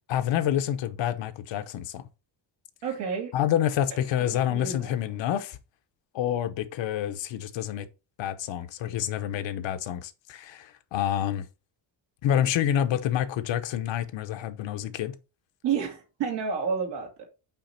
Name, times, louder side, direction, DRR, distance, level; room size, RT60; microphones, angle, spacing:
voice 1, 0.1-2.1 3.3-5.6 6.1-7.9 8.2-11.4 12.2-15.1, left 10 dB, 75° left, 0.9 m, -28 dB
voice 2, 2.8-3.3 4.3-4.9 15.6-17.2, right 6 dB, 70° right, 2.4 m, -30 dB
5.7 x 5.0 x 4.2 m
cardioid pair, 175°, 45 cm